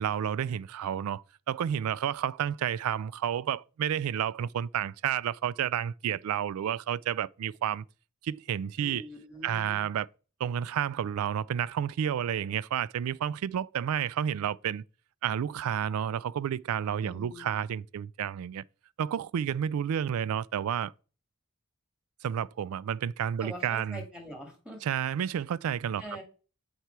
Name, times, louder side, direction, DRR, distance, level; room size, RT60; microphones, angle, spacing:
voice 1, 0.0-7.8 8.2-9.0 9.4-10.1 10.4-14.8 15.2-18.6 19.0-20.9 22.2-24.0 24.8-26.2, right 9 dB, 75° right, 0.3 m, -31 dB
voice 2, 8.8-9.8 17.0-17.5 23.4-24.8 26.0-26.2, equal, 5° right, 2.2 m, -44 dB
8.0 x 4.3 x 4.6 m
head